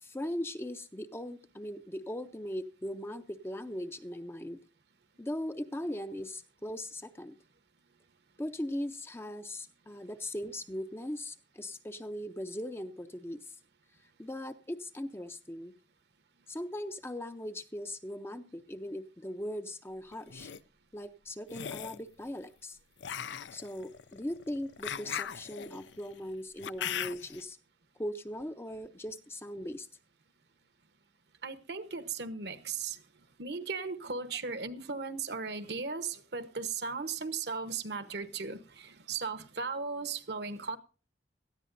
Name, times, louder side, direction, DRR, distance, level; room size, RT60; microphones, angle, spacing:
voice 1, 0.0-4.6 5.2-7.4 8.4-13.5 14.2-15.7 16.5-20.5 20.9-22.8 23.5-27.6 28.0-29.9, left 1 dB, 15° left, 0.6 m, -39 dB
sound 1, 20.1-20.6 21.5-22.0 23.0-27.4, left 9 dB, 75° left, 0.5 m, -39 dB
voice 2, 31.4-33.0 33.4-40.8, right 5 dB, 65° right, 1.0 m, -37 dB
18.5 x 13.5 x 2.6 m
head